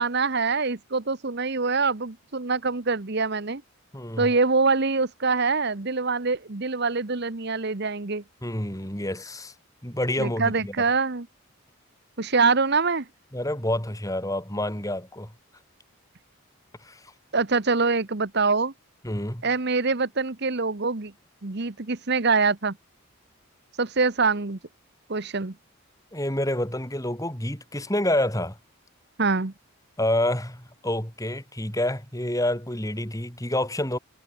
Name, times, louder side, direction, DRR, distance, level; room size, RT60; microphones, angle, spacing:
voice 1, 0.0-3.6 4.2-8.2 10.2-11.3 12.2-13.1 17.3-18.7 19.4-21.1 21.4-22.7 23.8-24.6 25.1-25.5 29.2-29.5, right 4 dB, 50° right, 1.1 m, -24 dB
voice 2, 3.9-4.3 8.4-9.5 9.8-10.7 13.3-15.3 16.8-17.0 19.0-19.4 26.1-28.6 30.0-34.0, left 1 dB, 15° left, 5.7 m, -28 dB
head